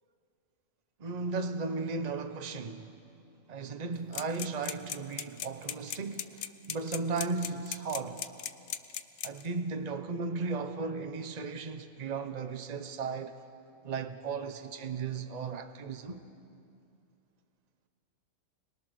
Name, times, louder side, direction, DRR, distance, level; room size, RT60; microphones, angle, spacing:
voice 1, 1.0-2.9 3.5-8.2 9.2-13.4 13.8-16.2, right 4 dB, 35° right, 1.0 m, -36 dB
sound 1, 4.1-9.5, left 9 dB, 65° left, 1.1 m, -37 dB
29.5 x 21.0 x 6.4 m
omnidirectional pair, 1.4 m